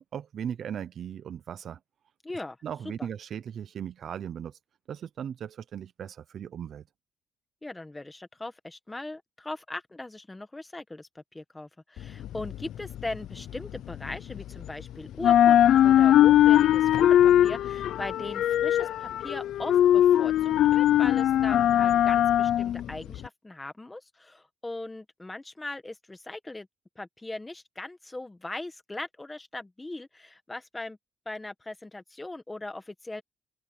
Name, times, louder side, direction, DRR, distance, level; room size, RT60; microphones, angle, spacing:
voice 1, 0.1-1.8 2.6-4.6 4.9-6.8, right 8 dB, 45° right, 0.6 m, -37 dB
voice 2, 2.2-2.6 3.0-3.1 7.6-26.7 26.9-31.0 31.2-33.2, left 2 dB, 10° left, 1.5 m, -39 dB
sound 1, 12.0-14.8 15.1-23.3, left 11 dB, 65° left, 0.4 m, -21 dB
open air
cardioid pair, 180°, 0 cm